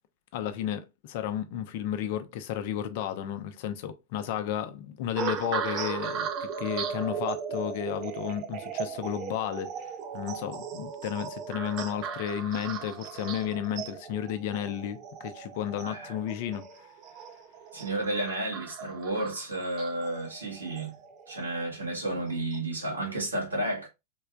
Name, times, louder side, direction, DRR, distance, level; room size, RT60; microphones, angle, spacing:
voice 1, 0.3-16.9, left 10 dB, 55° left, 0.6 m, -33 dB
sound 1, 5.2-21.6 22.3-22.6, right 7 dB, 40° right, 0.6 m, -37 dB
voice 2, 15.8-16.1 17.7-20.9 21.3-23.9, right 1 dB, 90° right, 1.7 m, -32 dB
3.9 x 3.3 x 2.3 m
figure-of-eight pair, 100°, 0 cm